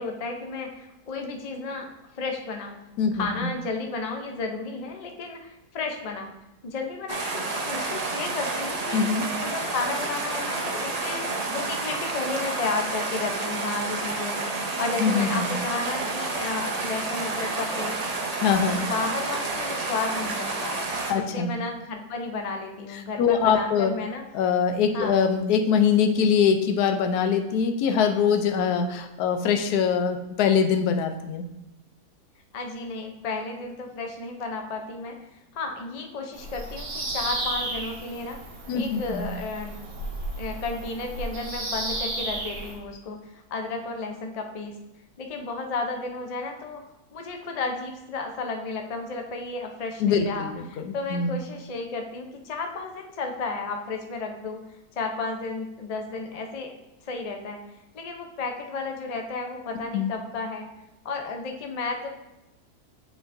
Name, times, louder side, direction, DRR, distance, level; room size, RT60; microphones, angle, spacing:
voice 1, 0.0-2.8 3.1-6.3 6.6-9.1 9.4-14.4 14.8-18.0 18.4-20.8 21.3-24.2 24.9-25.2 32.5-35.2 35.5-38.4 38.7-39.8 40.4-44.7 45.2-46.8 47.1-54.6 55.0-56.7 57.0-57.6 57.9-60.7 61.0-62.1, left 3 dB, 55° left, 3 dB, 0.4 m, -33 dB
voice 2, 3.0-3.5 8.9-9.3 15.0-15.5 18.4-18.8 21.1-21.5 22.9-23.9 24.3-31.4 38.7-39.3 50.0-51.4 59.9-60.1, left 6 dB, 80° left, 6 dB, 1.2 m, -23 dB
sound 1, 7.1-21.1, right 3 dB, 55° right, 0.4 m, -30 dB
Bird vocalization bird call bird song, 36.3-42.8, right 2 dB, 75° right, 1.7 m, -33 dB
8.1 x 4.8 x 2.6 m, 0.92 s
omnidirectional pair, 1.7 m